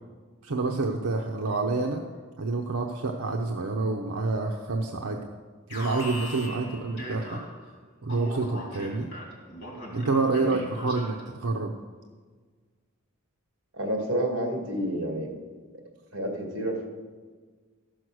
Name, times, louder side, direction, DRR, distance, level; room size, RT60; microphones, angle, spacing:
voice 1, 0.4-2.0 2.4-5.3 5.7-7.4 8.0-9.1 9.9-11.7, right 3 dB, 85° right, 1 dB, 0.8 m, -28 dB
Alarm, 5.7-7.7 8.1-11.3, equal, 55° left, 2.6 m, -40 dB
voice 2, 13.7-15.3 16.1-16.9, right 1 dB, 55° right, 1 dB, 2.3 m, -29 dB
14.0 x 6.3 x 6.3 m, 1.5 s
head